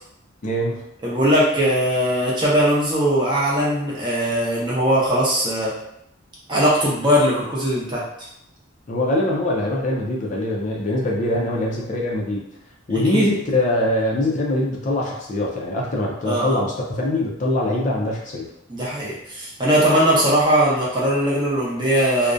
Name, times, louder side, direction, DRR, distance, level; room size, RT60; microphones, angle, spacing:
voice 1, 0.4-0.8 8.9-12.4 12.9-18.5, left 1 dB, 40° left, -2 dB, 0.4 m, -23 dB
voice 2, 1.0-5.7 6.5-8.3 13.1-13.3 16.3-16.6 18.7-22.3, equal, 25° right, -6 dB, 0.6 m, -20 dB
2.4 x 2.1 x 2.5 m, 0.77 s
head